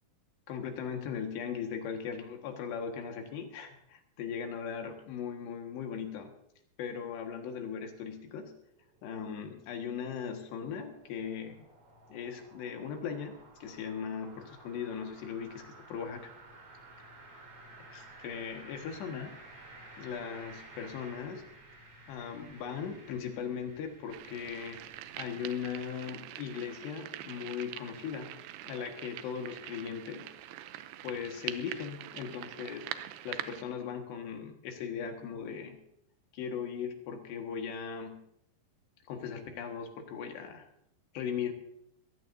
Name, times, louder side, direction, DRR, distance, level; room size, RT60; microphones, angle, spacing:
voice 1, 0.5-6.3 6.8-8.5 9.0-11.6 12.1-16.2 17.9-19.4 20.0-21.4 22.1-24.8 25.2-28.3 28.6-30.3 31.0-32.9 33.2-35.8 36.3-38.2 39.1-40.7 41.1-41.5, left 7 dB, 85° left, 4 dB, 3.9 m, -38 dB
sound 1, 8.3-25.9, right 2 dB, 50° right, 5.4 m, -54 dB
sound 2, 24.1-33.6, right 13 dB, 85° right, 2.8 m, -44 dB
22.0 x 15.5 x 2.7 m, 0.74 s
omnidirectional pair, 4.8 m